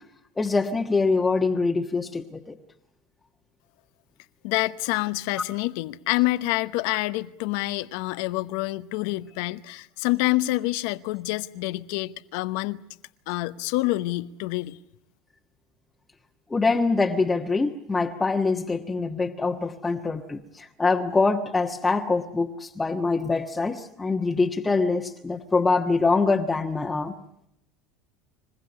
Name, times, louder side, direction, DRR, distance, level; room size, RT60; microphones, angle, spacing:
voice 1, 0.4-2.6 16.5-27.1, left 3 dB, 15° left, 1.3 m, -24 dB
voice 2, 4.4-12.8 13.3-14.8, left 19 dB, 70° left, 0.8 m, -27 dB
26.5 x 15.5 x 9.8 m
hypercardioid pair, 90°, 0 cm